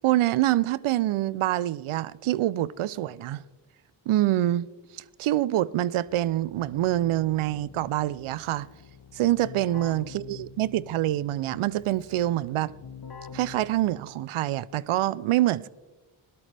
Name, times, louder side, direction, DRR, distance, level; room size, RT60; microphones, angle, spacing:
voice 1, 0.0-3.4 4.1-4.7 5.2-8.7 9.1-12.7 13.3-15.7, right 14 dB, 75° right, 0.5 m, -25 dB
Keyboard (musical), 6.0-14.3, left 6 dB, 50° left, 1.2 m, -46 dB
17.5 x 12.5 x 3.4 m
cardioid pair, 60°, 50 cm